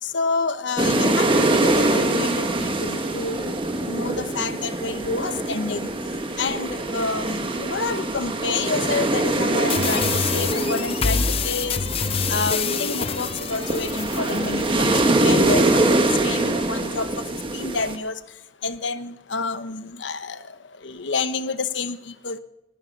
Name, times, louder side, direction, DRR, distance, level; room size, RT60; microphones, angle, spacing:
voice 1, 0.0-22.4, left 4 dB, 80° left, 1.0 m, -29 dB
sound 1, 0.8-18.0, right 2 dB, 30° right, 1.3 m, -24 dB
sound 2, 9.7-14.7, left 5 dB, 30° left, 0.5 m, -26 dB
19.0 x 13.5 x 5.3 m
head